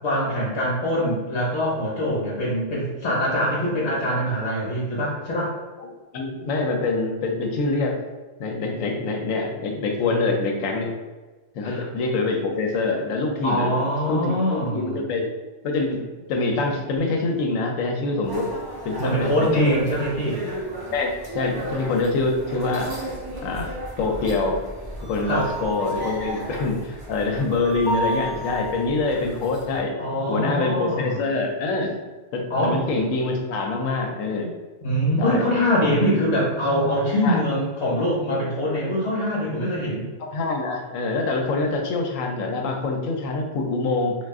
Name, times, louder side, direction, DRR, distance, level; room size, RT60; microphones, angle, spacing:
voice 1, 0.0-5.5 11.6-11.8 13.4-15.0 19.0-20.4 25.2-25.5 30.0-31.2 32.5-32.8 34.8-40.1, equal, 60° left, -5 dB, 1.1 m, -23 dB
voice 2, 6.1-8.0 8.4-10.9 11.5-13.8 14.1-15.3 15.6-18.5 18.8-19.8 20.9-22.9 23.4-24.6 25.0-29.9 30.3-32.0 32.3-34.5 35.2-35.5 37.2-37.4 40.2-44.2, left 3 dB, 85° left, 2 dB, 1.0 m, -25 dB
sound 1, 18.2-29.8, right 1 dB, 35° right, 0.4 m, -33 dB
2.4 x 2.4 x 3.5 m, 1.2 s
omnidirectional pair, 1.3 m